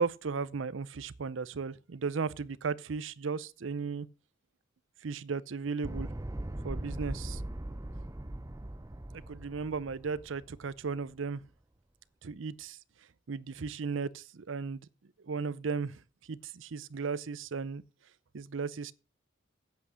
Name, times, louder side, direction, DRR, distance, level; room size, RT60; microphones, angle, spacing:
voice 1, 0.0-4.1 5.0-6.1 6.6-7.4 9.1-11.4 12.2-12.8 13.3-14.9 15.2-16.0 16.3-17.8 18.3-18.9, right 5 dB, 70° right, 0.6 m, -35 dB
sound 1, 5.8-11.0, right 1 dB, 15° right, 0.6 m, -40 dB
8.5 x 8.2 x 6.2 m
head